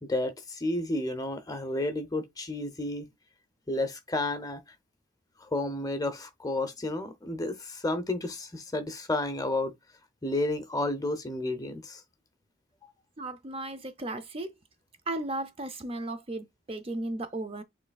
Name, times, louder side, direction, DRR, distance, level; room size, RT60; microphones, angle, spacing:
voice 1, 0.0-3.1 3.7-4.6 5.4-9.7 10.2-12.0, left 2 dB, 15° left, 0.7 m, -31 dB
voice 2, 13.2-14.5 15.1-17.6, right 2 dB, 25° right, 0.5 m, -35 dB
6.7 x 3.2 x 2.3 m
head